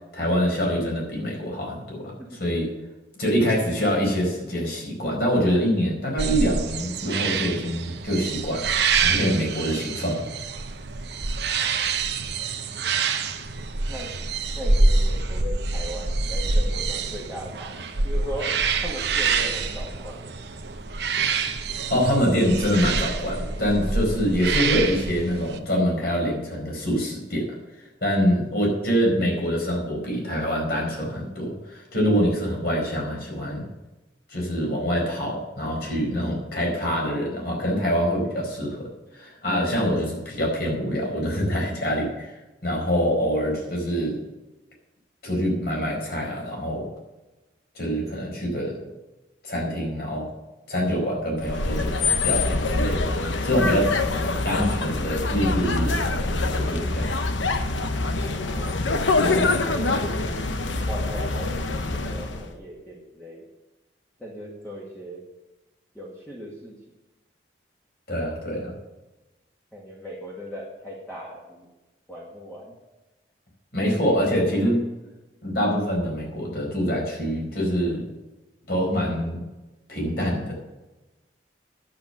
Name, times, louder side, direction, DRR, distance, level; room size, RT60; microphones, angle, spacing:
voice 1, 0.1-2.0 2.3-2.7 3.2-8.7 8.9-10.2 21.9-27.5 28.0-33.7 34.3-38.8 39.1-42.3 42.6-44.2 45.2-46.8 47.7-48.8 49.4-50.3 50.7-51.9 52.2-53.0 53.4-54.0 54.4-57.2 59.2-59.4 68.1-68.7 73.7-74.8 75.4-78.0 78.7-79.4 79.9-80.5, equal, 55° left, -1 dB, 4.8 m, -25 dB
sound 1, 6.2-25.6, right 4 dB, 60° right, 0.9 m, -26 dB
voice 2, 11.5-11.9 13.9-14.1 14.6-17.8 18.0-20.3 58.2-58.8 59.3-60.4 60.9-63.5 64.2-65.2 65.9-66.8 69.7-71.7 72.1-72.7, equal, 10° left, -5 dB, 2.0 m, -38 dB
sound 2, 51.4-62.5, left 3 dB, 80° left, 1.0 m, -25 dB
10.5 x 8.1 x 6.7 m, 1.1 s
head